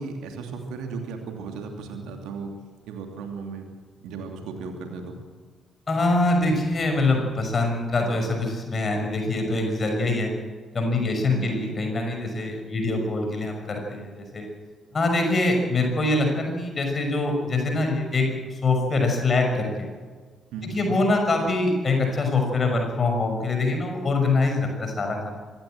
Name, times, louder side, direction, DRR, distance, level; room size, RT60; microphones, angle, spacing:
voice 1, 0.0-2.5 2.9-3.7 4.0-5.2 11.3-11.8 20.5-21.0, right 4 dB, 65° right, 4 dB, 2.8 m, -35 dB
voice 2, 5.9-10.3 10.7-14.5 14.9-19.9 20.7-25.3, left 2 dB, 40° left, 3 dB, 6.0 m, -24 dB
25.5 x 15.0 x 7.9 m, 1.5 s
figure-of-eight pair, 40°, 0 cm